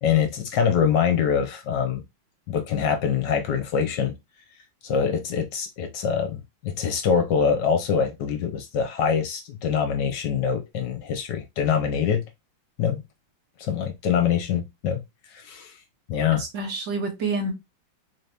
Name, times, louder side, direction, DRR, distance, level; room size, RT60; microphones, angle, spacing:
voice 1, 0.0-2.0 2.5-4.1 4.8-12.2 12.8-13.0 13.6-15.0 15.3-15.7 16.1-16.4, left 7 dB, 65° left, 1.3 m, -24 dB
voice 2, 16.4-17.5, right 3 dB, 65° right, 1.7 m, -28 dB
3.9 x 2.8 x 3.3 m
omnidirectional pair, 2.2 m